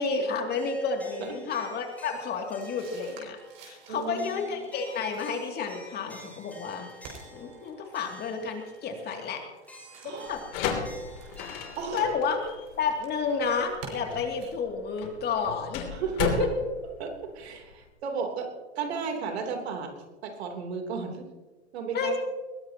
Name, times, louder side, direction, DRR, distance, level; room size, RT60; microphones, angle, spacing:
voice 1, 0.0-3.4 3.6-6.9 7.3-9.4 10.0-10.4 11.9-15.9 21.9-22.2, left 5 dB, 30° left, 3 dB, 2.6 m, -31 dB
sound 1, 0.5-11.8, left 1 dB, 5° left, 5.8 m, -50 dB
sound 2, 1.8-14.5, right 4 dB, 40° right, 6.2 m, -51 dB
voice 2, 3.9-4.6 10.0-10.3 11.8-12.1 15.9-16.5 17.0-18.5 18.7-19.9 20.2-21.2 21.7-22.2, right 5 dB, 65° right, 3 dB, 3.4 m, -33 dB
sound 3, 10.3-17.9, left 6 dB, 50° left, 3.1 m, -35 dB
21.5 x 16.5 x 2.9 m, 1.2 s
hypercardioid pair, 110°, 34 cm